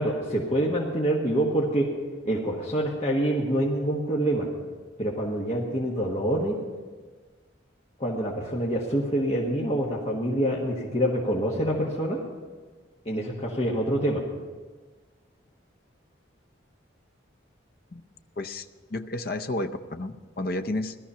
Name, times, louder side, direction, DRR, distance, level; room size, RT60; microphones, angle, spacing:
voice 1, 0.0-1.9 2.2-4.5 5.0-6.6 8.0-12.2 13.0-14.2, right 1 dB, 35° left, -5 dB, 1.5 m, -26 dB
voice 2, 18.4-18.7 18.9-21.0, left 2 dB, 50° left, 8 dB, 0.7 m, -31 dB
17.5 x 13.0 x 5.7 m, 1.4 s
head